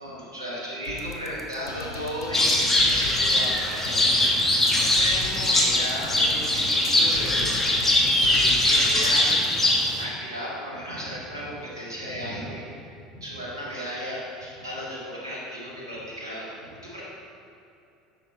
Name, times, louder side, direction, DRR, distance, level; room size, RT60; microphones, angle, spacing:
voice 1, 0.0-9.4 9.7-17.0, equal, 80° right, -6 dB, 1.9 m, -35 dB
sound 1, 0.8-9.4, left 3 dB, 75° left, 0.7 m, -39 dB
sound 2, 2.3-10.0, left 1 dB, 15° left, 1.3 m, -22 dB
9.0 x 6.2 x 4.1 m, 2.7 s
figure-of-eight pair, 70°, 2 cm